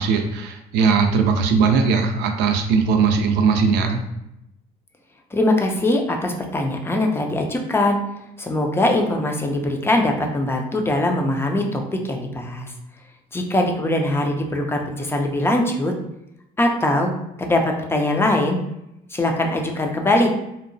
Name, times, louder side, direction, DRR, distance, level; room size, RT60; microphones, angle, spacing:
voice 1, 0.0-4.0, right 5 dB, 85° right, 5 dB, 0.4 m, -19 dB
voice 2, 5.3-8.0 8.4-12.7 13.3-15.9 16.6-17.1 17.4-18.6 19.1-20.3, left 1 dB, 15° left, 2 dB, 0.4 m, -21 dB
2.8 x 2.1 x 2.5 m, 0.85 s
cardioid pair, 110°, 17 cm